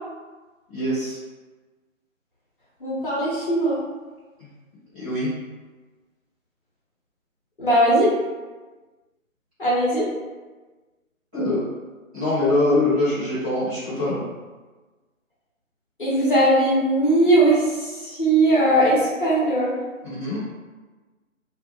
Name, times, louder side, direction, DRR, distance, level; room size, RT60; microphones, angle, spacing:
voice 1, 0.7-1.2 4.4-4.5 4.9-5.3 11.3-11.6 12.1-14.2 20.0-20.5, left 2 dB, 5° right, -22 dB, 0.8 m, -23 dB
voice 2, 2.8-3.8 7.6-8.1 9.6-10.1 16.0-19.8, right 1 dB, 40° left, -7 dB, 0.7 m, -19 dB
2.2 x 2.2 x 2.9 m, 1.3 s
figure-of-eight pair, 145°, 41 cm